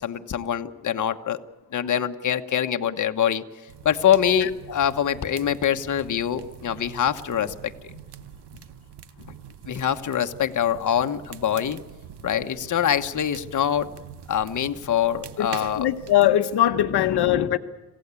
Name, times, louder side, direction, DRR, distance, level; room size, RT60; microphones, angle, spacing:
voice 1, 0.0-1.4 1.7-3.4 3.8-7.9 9.7-11.8 12.2-13.9 14.3-15.9 17.0-17.5, left 9 dB, 50° left, 1.2 m, -24 dB
sound 1, 3.7-16.3, right 9 dB, 85° right, 1.2 m, -44 dB
voice 2, 15.4-17.6, left 12 dB, 75° left, 1.0 m, -21 dB
26.5 x 16.5 x 8.4 m
cardioid pair, 120°, 39 cm